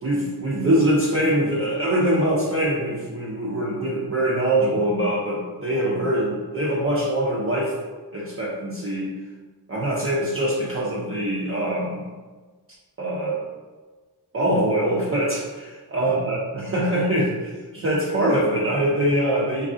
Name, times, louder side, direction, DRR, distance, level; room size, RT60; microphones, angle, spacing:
voice 1, 0.0-7.8 8.1-9.1 9.7-12.1 13.0-13.4 14.3-19.7, right 1 dB, 30° right, -7 dB, 0.5 m, -23 dB
2.4 x 2.4 x 3.6 m, 1.3 s
wide cardioid pair, 70°, 42 cm